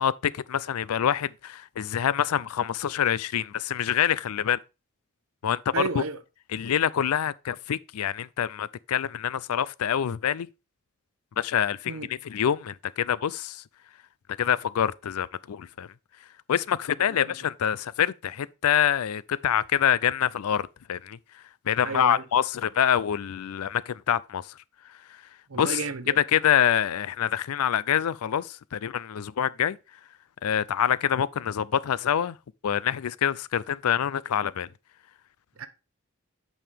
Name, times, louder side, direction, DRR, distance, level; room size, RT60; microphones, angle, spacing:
voice 1, 0.0-4.6 5.4-6.0 6.5-10.5 11.4-13.6 14.4-15.9 16.5-21.2 21.7-24.4 25.5-25.8 26.2-29.8 30.4-32.3 32.6-34.7, left 9 dB, 85° left, 0.4 m, -26 dB
voice 2, 5.7-6.2 11.9-12.1 17.1-17.4 21.8-22.2 25.5-26.2 35.6-35.7, right 4 dB, 75° right, 0.9 m, -32 dB
8.4 x 5.5 x 3.5 m
head